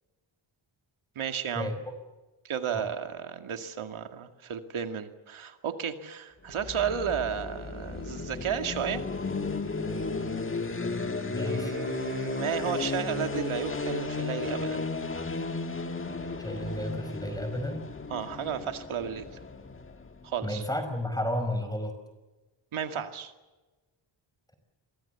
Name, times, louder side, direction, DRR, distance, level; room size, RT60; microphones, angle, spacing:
voice 1, 1.2-1.7 2.4-9.0 11.4-14.8 18.1-19.2 20.2-20.6 22.7-23.3, right 8 dB, 80° right, 6 dB, 2.3 m, -33 dB
sound 1, 6.5-20.4, left 4 dB, 25° left, 1.6 m, -34 dB
voice 2, 10.8-11.7 16.4-17.9 20.4-22.0, equal, 10° left, 8 dB, 5.3 m, -33 dB
29.0 x 24.0 x 7.1 m, 1.2 s
wide cardioid pair, 155°, 48 cm